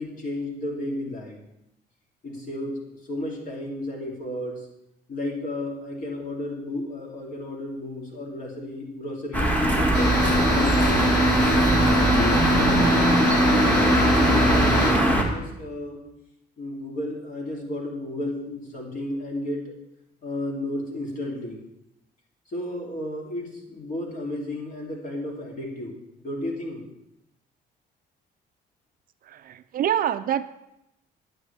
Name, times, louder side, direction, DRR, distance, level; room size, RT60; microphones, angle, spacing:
voice 1, 0.0-1.4 2.2-4.7 5.1-11.3 12.1-16.0 16.6-19.7 20.2-21.6 22.5-26.8, left 1 dB, 45° left, -2 dB, 2.8 m, -33 dB
sound 1, 9.3-15.2, equal, 10° left, 1.6 m, -21 dB
sound 2, 9.9-14.9, equal, 80° left, 3.7 m, -23 dB
voice 2, 29.3-30.4, right 10 dB, 55° right, 13 dB, 0.4 m, -26 dB
9.4 x 9.2 x 3.3 m, 0.85 s
cardioid pair, 110°, 18 cm